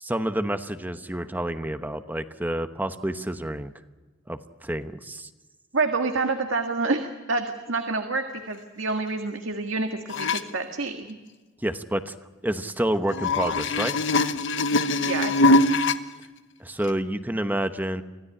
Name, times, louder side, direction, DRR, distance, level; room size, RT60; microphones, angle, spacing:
voice 1, 0.0-3.7 4.3-5.3 11.6-12.1 12.4-13.9 16.6-18.0, right 1 dB, 10° right, 9 dB, 1.0 m, -29 dB
voice 2, 5.7-11.2 14.7-15.7, right 3 dB, 80° right, 5 dB, 1.8 m, -28 dB
sound 1, 10.1-10.4 13.1-16.0 16.8-16.9, left 2 dB, 65° left, 1.2 m, -22 dB
25.5 x 16.5 x 9.9 m, 1.3 s
head